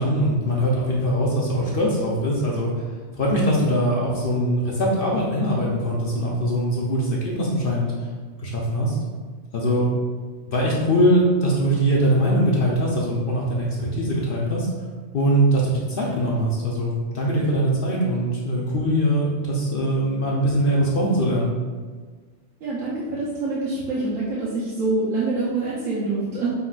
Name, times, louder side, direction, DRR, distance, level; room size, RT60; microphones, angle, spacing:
voice 1, 0.0-2.8 3.1-8.1 8.4-9.0 9.5-9.9 10.5-14.7 15.1-21.5, equal, 55° left, -4 dB, 0.8 m, -22 dB
voice 2, 22.6-26.5, right 3 dB, 85° right, -8 dB, 1.2 m, -25 dB
5.7 x 3.0 x 2.4 m, 1.5 s
omnidirectional pair, 1.3 m